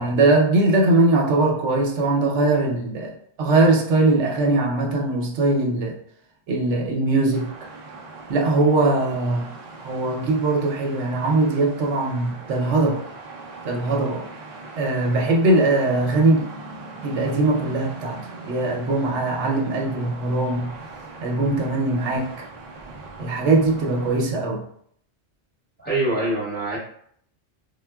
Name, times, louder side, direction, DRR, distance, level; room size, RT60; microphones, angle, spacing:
voice 1, 0.0-3.1 3.4-6.0 6.5-7.5 8.3-9.5 9.8-13.0 13.6-14.2 14.8-16.4 17.0-20.7 21.2-22.3 23.2-24.6, right 2 dB, 85° right, 0 dB, 0.9 m, -21 dB
sound 1, 7.3-24.2, right 3 dB, 60° right, 0.3 m, -40 dB
voice 2, 25.8-26.8, right 2 dB, 10° left, -5 dB, 0.7 m, -24 dB
3.7 x 2.2 x 2.2 m, 0.65 s
omnidirectional pair, 1.2 m